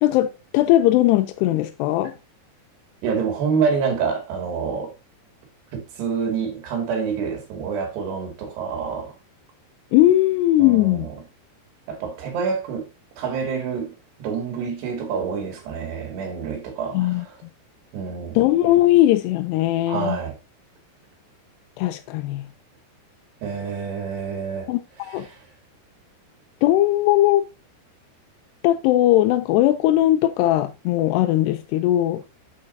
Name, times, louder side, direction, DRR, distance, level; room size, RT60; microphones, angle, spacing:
voice 1, 0.0-2.1 9.9-11.1 16.9-17.3 18.4-20.2 21.8-22.5 24.7-25.3 26.6-27.4 28.6-32.2, left 14 dB, 85° left, 2.7 m, -19 dB
voice 2, 3.0-4.9 5.7-9.1 10.6-11.2 11.9-12.9 13.2-13.9 14.2-17.3 17.9-18.4 19.9-20.4 23.4-24.7 25.1-25.4, right 6 dB, 75° right, 4.3 m, -27 dB
8.8 x 8.5 x 2.6 m
omnidirectional pair, 4.8 m